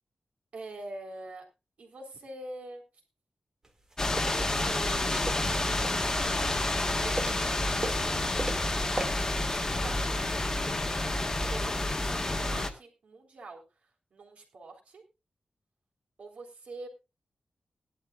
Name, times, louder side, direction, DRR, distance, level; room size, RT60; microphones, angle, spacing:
voice 1, 0.5-1.4 1.8-2.8 4.2-5.4 7.0-7.7 9.5-10.9 11.2-13.6 14.1-15.0 16.2-16.9, right 2 dB, 65° right, 2 dB, 4.0 m, -45 dB
sound 1, 3.6-4.4 5.0-6.3 6.7-7.5 7.8-8.7 9.0-9.1, right 2 dB, 20° right, 2.3 m, -36 dB
sound 2, 4.0-12.7, left 2 dB, 25° left, 1.4 m, -29 dB
20.0 x 11.5 x 2.5 m, 0.26 s
wide cardioid pair, 155°, 2 cm